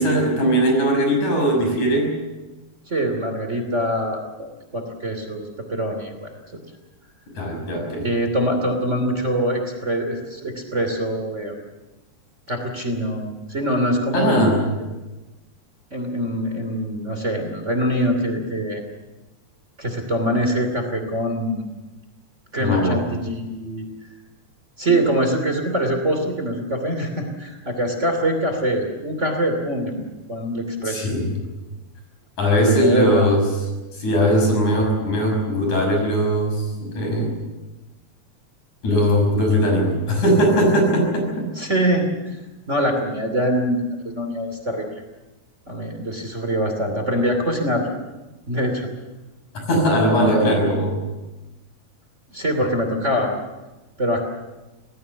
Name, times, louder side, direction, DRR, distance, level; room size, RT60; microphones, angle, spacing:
voice 1, 0.0-2.1 7.4-8.1 14.1-14.6 22.6-23.0 30.9-31.4 32.4-33.4 33.9-37.4 38.8-41.5 49.5-51.0, equal, 80° left, 2 dB, 7.5 m, -19 dB
voice 2, 2.9-6.3 8.0-11.5 12.5-14.9 15.9-18.8 19.8-21.6 22.5-23.9 24.8-31.1 32.6-33.3 41.6-45.0 45.7-47.9 48.5-48.9 50.2-50.7 52.3-53.3 54.0-54.2, equal, 25° right, 4 dB, 2.9 m, -24 dB
26.0 x 18.5 x 7.1 m, 1.1 s
omnidirectional pair, 3.4 m